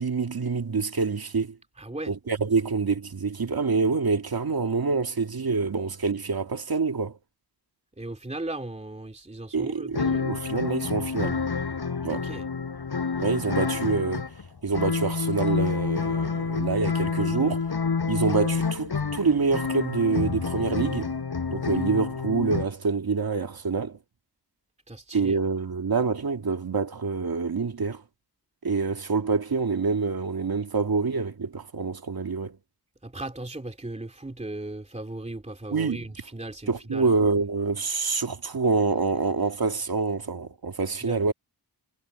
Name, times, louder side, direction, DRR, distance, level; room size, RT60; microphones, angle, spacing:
voice 1, 0.0-1.6 2.1-7.2 9.5-11.4 12.0-12.3 13.2-14.3 14.6-17.6 18.1-21.2 21.5-24.0 25.1-28.0 28.6-32.6 35.7-36.0 36.7-41.3, right 4 dB, 60° right, 2.3 m, -26 dB
voice 2, 1.8-2.1 8.0-10.2 12.1-12.4 17.2-17.6 24.9-25.4 33.0-37.1 41.0-41.2, right 2 dB, 15° right, 2.6 m, -37 dB
sound 1, 9.9-22.7, left 5 dB, 65° left, 6.1 m, -28 dB
wide cardioid pair, 115°, 41 cm